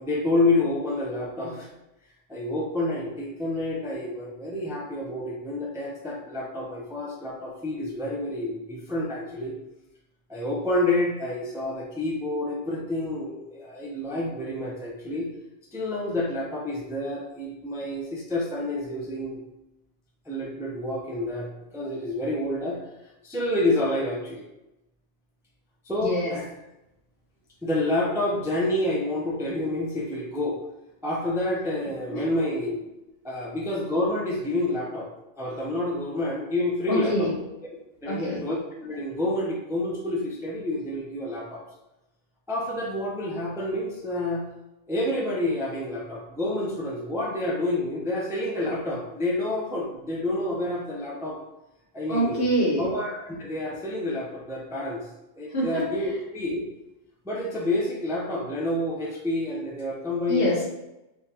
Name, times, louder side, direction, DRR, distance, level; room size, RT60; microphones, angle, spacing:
voice 1, 0.0-1.7 2.3-9.5 10.3-15.3 15.7-19.4 20.3-22.8 23.2-24.4 25.8-26.4 27.6-30.6 31.0-32.9 33.2-35.1 35.4-37.3 38.0-38.6 38.8-41.6 42.5-44.4 44.9-51.4 51.9-52.4 52.8-55.1 55.4-56.7 57.2-60.7, left 1 dB, 5° right, -3 dB, 0.5 m, -28 dB
voice 2, 26.0-26.4 32.1-32.3 36.9-37.4 38.1-38.4 52.1-52.9 55.5-55.9 60.3-60.7, right 1 dB, 60° left, -3 dB, 1.3 m, -25 dB
3.6 x 3.6 x 2.9 m, 0.93 s
omnidirectional pair, 1.1 m